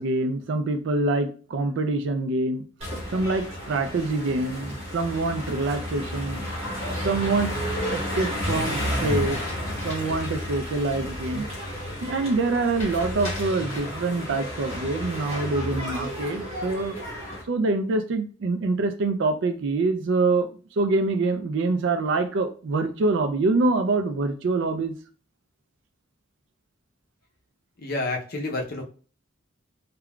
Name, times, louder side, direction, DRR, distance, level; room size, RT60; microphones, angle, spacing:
voice 1, 0.0-2.6 3.1-6.5 7.0-7.6 7.9-9.4 9.8-11.5 12.0-17.0 17.5-20.5 20.8-25.0, right 3 dB, 60° right, 8 dB, 0.4 m, -25 dB
sound 1, 2.8-17.4, equal, 30° right, 1.0 m, -32 dB
sound 2, 5.9-6.8 9.0-10.3 10.6-10.7 12.7-14.0 15.1-16.3 16.7-17.3, left 1 dB, 30° left, 1.3 m, -42 dB
voice 2, 27.8-28.8, left 2 dB, 50° left, 2 dB, 0.6 m, -29 dB
3.6 x 2.2 x 2.3 m, 0.38 s
head